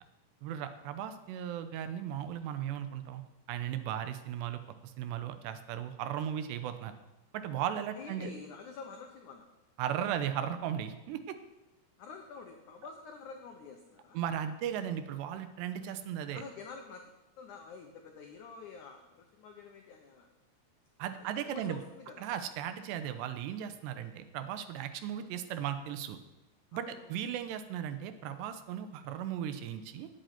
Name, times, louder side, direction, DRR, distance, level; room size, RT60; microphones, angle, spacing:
voice 1, 0.4-3.2 3.5-4.6 5.0-6.9 7.3-8.3 9.8-11.4 14.1-16.4 21.0-21.8 22.2-26.2 26.7-30.1, right 9 dB, 85° right, 10 dB, 3.0 m, -36 dB
voice 2, 7.9-9.5 12.0-14.2 16.3-17.1 17.4-20.3 21.2-22.3 26.7-27.2, left 5 dB, 85° left, 4 dB, 1.7 m, -48 dB
9.2 x 8.7 x 9.3 m, 1.0 s
omnidirectional pair, 5.0 m